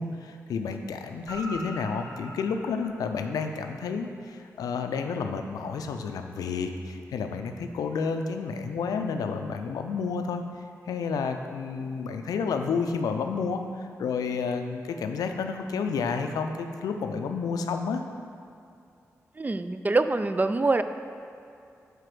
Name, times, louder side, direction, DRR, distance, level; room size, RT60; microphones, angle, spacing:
voice 1, 0.0-10.4 10.9-18.0, left 5 dB, 90° left, 6 dB, 0.4 m, -30 dB
Guitar, 1.3-3.8 7.6-7.7, right 1 dB, 60° right, 1.5 m, -42 dB
voice 2, 19.4-20.8, right 3 dB, 30° right, 10 dB, 0.3 m, -24 dB
4.9 x 4.7 x 6.0 m, 2.5 s
cardioid pair, 45°, 6 cm